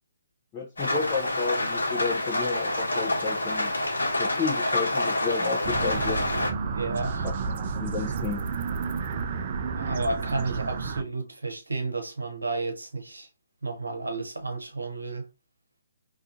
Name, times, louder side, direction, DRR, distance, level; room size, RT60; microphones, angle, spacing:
voice 1, 0.5-3.7 4.2-6.2 7.5-8.4, left 5 dB, 20° left, 0.5 m, -32 dB
Rain, 0.8-6.5, left 1 dB, 70° left, 1.0 m, -27 dB
sound 1, 5.6-11.0, right 5 dB, 40° right, 0.3 m, -31 dB
voice 2, 6.7-7.3 9.8-13.3 13.6-15.3, right 3 dB, 85° right, 0.7 m, -32 dB
2.4 x 2.4 x 2.5 m
figure-of-eight pair, 140°, 0 cm